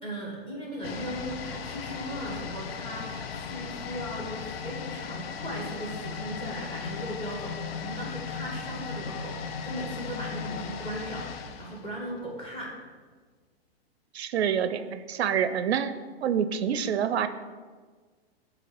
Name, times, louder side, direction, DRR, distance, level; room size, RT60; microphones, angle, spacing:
voice 1, 0.0-12.7, equal, 15° left, -4 dB, 2.1 m, -38 dB
sound 1, 0.8-12.6 12.8-12.9, left 6 dB, 70° left, 0.7 m, -37 dB
voice 2, 14.1-15.9 16.2-17.3, right 8 dB, 85° right, 11 dB, 0.5 m, -27 dB
7.1 x 3.3 x 6.1 m, 1.5 s
hypercardioid pair, 125°, 31 cm